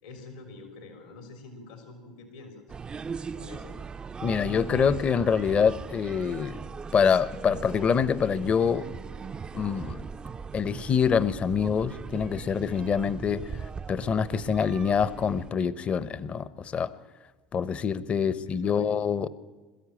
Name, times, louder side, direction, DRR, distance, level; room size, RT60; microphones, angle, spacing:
voice 1, 0.0-2.6 3.3-3.8 18.1-18.9, left 3 dB, 80° left, 5 dB, 3.3 m, -46 dB
sound 1, 2.7-15.5, right 5 dB, 25° right, 0.5 m, -39 dB
voice 2, 4.2-6.6 6.9-8.9 9.5-10.1 10.5-13.6 13.9-16.9 17.5-19.3, left 6 dB, 40° left, 17 dB, 0.9 m, -25 dB
22.0 x 13.5 x 8.8 m, 1.3 s
hypercardioid pair, 75°, 3 cm